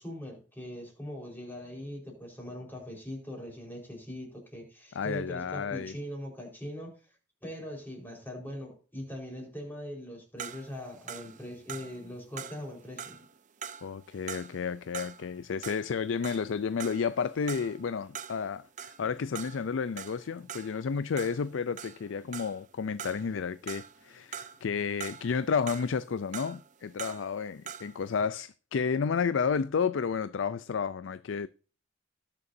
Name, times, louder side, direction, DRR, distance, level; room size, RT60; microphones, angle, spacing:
voice 1, 0.0-7.0 7.4-13.2, equal, 10° left, 4.4 m, -41 dB
voice 2, 4.9-5.9 13.8-31.5, left 6 dB, 70° left, 0.4 m, -31 dB
sound 1, 10.4-15.4 15.6-22.7 23.0-24.7 25.0-28.0, right 8 dB, 40° right, 0.6 m, -44 dB
19.0 x 6.8 x 2.7 m
head